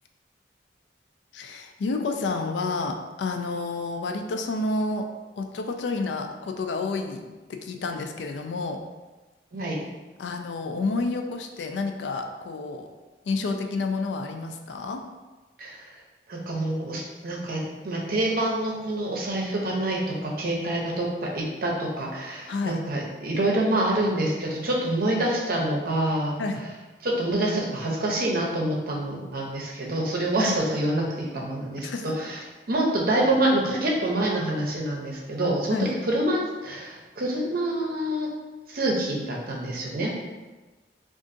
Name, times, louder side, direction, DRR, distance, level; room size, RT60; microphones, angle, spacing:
voice 1, 1.3-5.0 5.4-7.2 7.5-8.8 10.2-12.9 13.2-15.0 22.5-22.8 26.4-26.6 30.4-30.6 31.8-32.1 35.7-36.0, left 3 dB, 85° left, 5 dB, 0.4 m, -29 dB
voice 2, 16.3-26.4 27.0-31.9 32.2-32.4 32.7-38.3 38.7-40.1, right 1 dB, 55° right, -2 dB, 0.6 m, -26 dB
3.7 x 2.5 x 2.5 m, 1.2 s
head